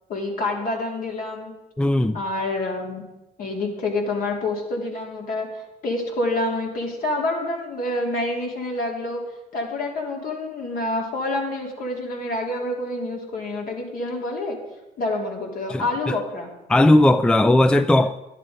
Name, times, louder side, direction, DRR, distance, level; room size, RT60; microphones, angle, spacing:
voice 1, 0.1-1.5 2.1-3.0 3.4-5.5 5.8-9.2 9.5-14.6 15.0-16.5, left 2 dB, 55° left, 3.3 m, -27 dB
voice 2, 1.8-2.2 15.7-16.2 16.7-18.2, left 1 dB, 5° left, 0.4 m, -17 dB
12.0 x 11.0 x 5.1 m
cardioid pair, 110°, 17 cm